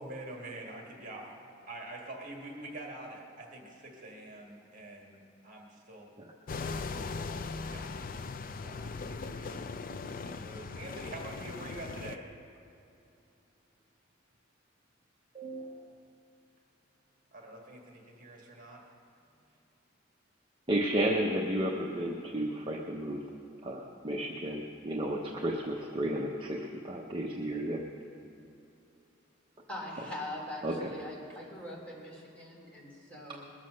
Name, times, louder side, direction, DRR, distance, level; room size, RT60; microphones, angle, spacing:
voice 1, 0.0-1.3 1.7-6.1 6.6-12.3 17.3-18.8, right 1 dB, 45° right, -1 dB, 1.8 m, -46 dB
sound 1, 6.5-12.2, left 4 dB, 45° left, 0.5 m, -39 dB
voice 2, 15.3-15.9 20.7-23.2 23.6-26.6 26.8-27.8 30.6-30.8 33.3-33.4, right 1 dB, 25° right, 0 dB, 0.8 m, -32 dB
voice 3, 29.7-33.4, left 1 dB, 5° left, -5 dB, 3.4 m, -42 dB
21.0 x 7.5 x 6.4 m, 2.7 s
head